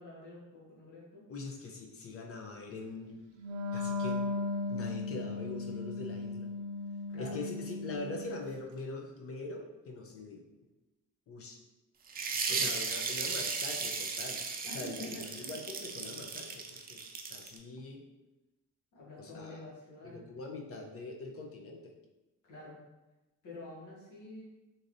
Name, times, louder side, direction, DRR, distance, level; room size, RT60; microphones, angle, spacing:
voice 1, 0.0-1.2 7.1-7.5 12.4-12.7 14.7-15.6 18.9-20.2 22.4-22.8 23.4-24.4, left 1 dB, 80° left, -6 dB, 1.3 m, -47 dB
voice 2, 1.3-3.2 3.7-4.3 4.7-6.5 7.2-10.4 11.3-11.6 12.5-17.0 17.3-18.0 19.2-19.6 20.0-21.9, left 3 dB, 50° left, 2 dB, 0.6 m, -43 dB
Wind instrument woodwind instrument, 3.4-8.5, left 3 dB, 85° right, 0.6 m, -37 dB
sound 1, 12.1-17.6, right 4 dB, 30° right, 0.4 m, -36 dB
3.1 x 2.7 x 2.5 m, 1.0 s
cardioid pair, 90°, 30 cm